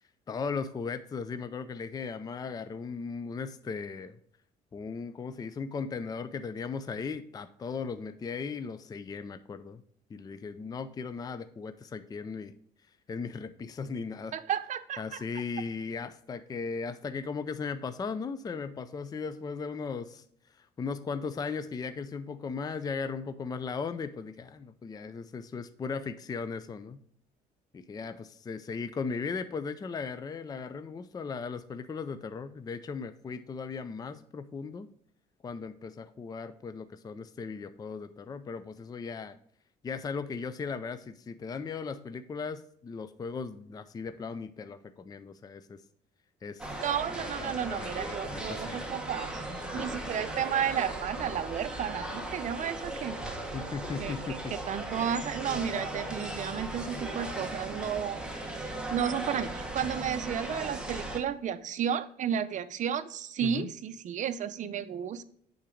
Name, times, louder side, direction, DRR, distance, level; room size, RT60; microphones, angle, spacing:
voice 1, 0.3-4.2 4.7-9.8 10.1-12.5 13.1-14.3 15.0-20.2 20.6-27.0 27.7-34.9 35.4-39.4 39.8-45.8 46.4-46.7 47.4-48.8 49.7-50.2 53.5-54.5 63.4-63.7, left 5 dB, 25° left, 11 dB, 0.4 m, -37 dB
voice 2, 14.3-15.2 46.8-49.4 49.7-53.2 54.0-58.2 58.6-65.2, right 8 dB, 45° right, 11 dB, 0.6 m, -33 dB
sound 1, 46.6-61.2, right 1 dB, 5° right, 1.3 m, -37 dB
8.8 x 3.9 x 5.0 m, 0.66 s
cardioid pair, 110°, 17 cm